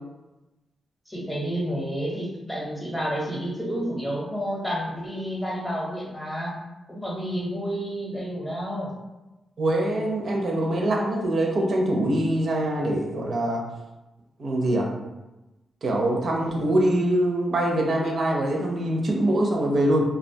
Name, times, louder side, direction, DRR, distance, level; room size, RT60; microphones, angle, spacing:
voice 1, 1.1-6.5 6.9-8.9 16.3-16.5, equal, 5° left, -4 dB, 0.7 m, -30 dB
voice 2, 9.6-13.6 14.4-14.9 15.8-20.0, right 1 dB, 55° right, 0 dB, 0.5 m, -23 dB
2.3 x 2.1 x 2.6 m, 1.0 s
cardioid pair, 105°, 0 cm